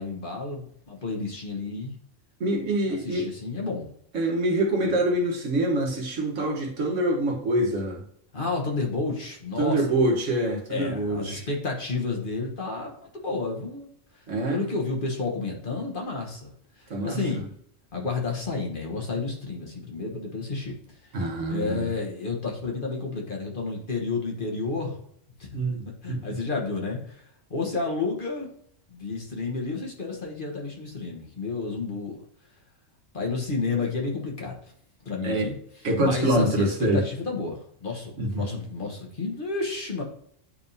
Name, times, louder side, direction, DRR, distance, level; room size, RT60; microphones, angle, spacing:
voice 1, 0.0-1.9 3.0-3.9 4.8-4.9 8.3-9.8 10.7-12.9 13.2-16.5 16.8-17.5 17.9-21.2 21.5-25.0 25.4-25.5 26.0-28.5 28.9-32.2 33.1-34.6 35.0-35.5 36.0-40.0, left 3 dB, 45° left, 0 dB, 1.3 m, -31 dB
voice 2, 2.4-3.3 4.1-8.0 9.6-11.4 14.3-14.7 16.9-17.2 21.1-21.9 25.5-26.4 35.2-35.5 35.8-37.0 38.2-38.4, right 1 dB, 75° right, 0 dB, 1.6 m, -25 dB
9.8 x 3.5 x 2.7 m, 0.66 s
omnidirectional pair, 1.3 m